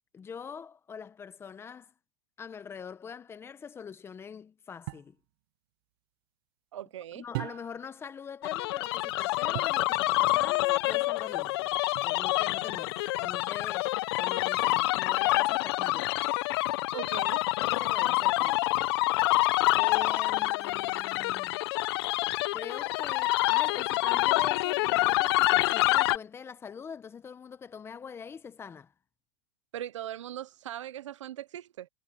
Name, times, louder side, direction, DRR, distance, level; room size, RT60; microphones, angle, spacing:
voice 1, 0.1-1.9 2.4-5.2 7.1-11.7 12.0-16.2 17.6-18.7 19.7-21.6 22.5-28.9, left 6 dB, 15° left, 1.1 m, -43 dB
sound 1, 4.9-5.2 7.3-8.0 9.5-9.9 11.9-12.5, right 24 dB, 55° right, 0.4 m, -39 dB
voice 2, 6.7-7.2 16.9-17.4 29.7-31.9, right 12 dB, 85° right, 0.8 m, -39 dB
sound 2, 8.4-26.2, left 19 dB, 55° left, 0.7 m, -27 dB
supercardioid pair, 140°, 15 cm